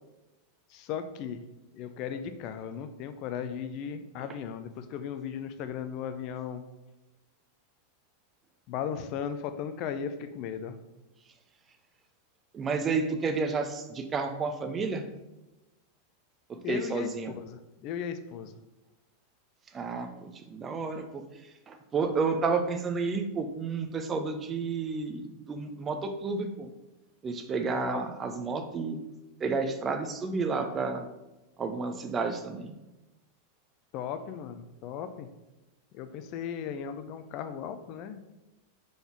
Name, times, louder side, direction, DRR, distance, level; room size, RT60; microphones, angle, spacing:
voice 1, 0.7-1.4 1.7-6.6 8.7-10.8 16.6-18.6 27.7-28.0 33.9-35.3 35.9-38.2, left 8 dB, 40° left, 10 dB, 0.5 m, -36 dB
voice 2, 12.5-15.0 16.5-17.3 19.7-21.2 21.7-26.7 27.2-29.0 29.4-31.1 31.6-32.7, right 4 dB, 20° right, 7 dB, 0.7 m, -31 dB
5.2 x 4.0 x 4.5 m, 1.0 s
figure-of-eight pair, 90°, 0 cm